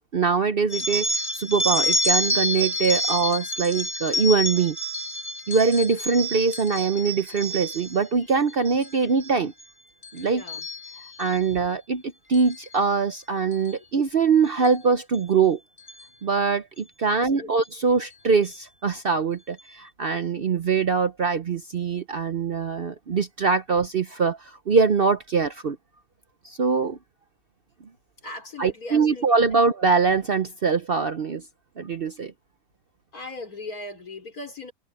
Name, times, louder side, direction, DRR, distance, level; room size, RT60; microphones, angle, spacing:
voice 1, 0.1-1.1 1.3-4.8 5.5-9.5 10.1-10.4 11.2-15.6 16.2-25.8 26.4-27.0 28.6-31.4 31.8-32.3, right 5 dB, 50° right, 0.8 m, -23 dB
sound 1, 0.7-8.0 8.5-8.9 9.2-9.6 10.0-11.4 12.3-12.6 13.5-13.7 14.6-14.7 15.1-15.2 15.8-16.0, left 1 dB, 40° left, 3.5 m, -28 dB
voice 2, 10.3-10.7 11.0-11.3 17.1-17.5 28.2-29.2 29.6-29.7 33.1-34.7, left 2 dB, 70° left, 4.3 m, -39 dB
omnidirectional pair, 1.6 m